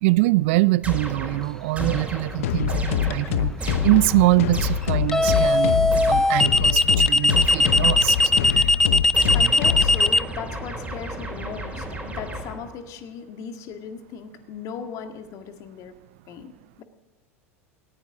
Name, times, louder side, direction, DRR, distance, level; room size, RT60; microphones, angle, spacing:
voice 1, 0.0-8.8 9.2-9.5, right 21 dB, 60° right, 0.5 m, -23 dB
sound 1, 0.8-6.5 7.3-8.6 9.1-12.8, right 1 dB, 15° right, 4.7 m, -33 dB
sound 2, 1.8-2.1 5.1-10.2, left 2 dB, 5° left, 0.5 m, -18 dB
sound 3, 2.4-10.1, left 10 dB, 70° left, 0.9 m, -25 dB
voice 2, 9.1-15.9 16.3-16.8, left 7 dB, 45° left, 1.9 m, -37 dB
19.0 x 15.5 x 3.8 m
hypercardioid pair, 85°, 8 cm